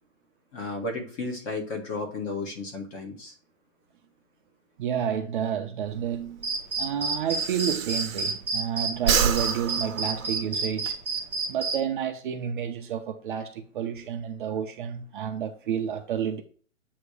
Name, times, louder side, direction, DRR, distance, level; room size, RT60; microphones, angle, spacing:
voice 1, 0.5-3.3, left 3 dB, 25° left, 1.2 m, -33 dB
voice 2, 4.8-6.5 6.8-11.0 11.5-16.4, right 8 dB, 40° right, 0.6 m, -30 dB
Breathing, 5.9-8.7 9.0-10.9, right 7 dB, 80° right, 0.9 m, -29 dB
sound 1, 6.4-11.8, right 3 dB, 5° right, 0.8 m, -29 dB
8.1 x 2.9 x 4.8 m
hypercardioid pair, 155°, 39 cm